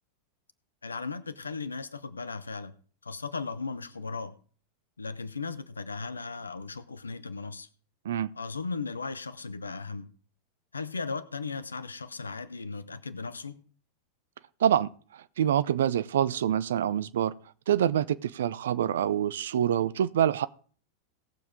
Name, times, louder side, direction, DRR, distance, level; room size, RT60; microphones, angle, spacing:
voice 1, 0.8-2.7 3.0-4.3 5.0-7.7 8.3-10.1 10.7-13.6, left 4 dB, 75° left, 0.9 m, -36 dB
voice 2, 14.6-17.3 17.7-20.5, right 10 dB, 60° right, 0.6 m, -26 dB
18.0 x 7.2 x 3.7 m
figure-of-eight pair, 90°, 0 cm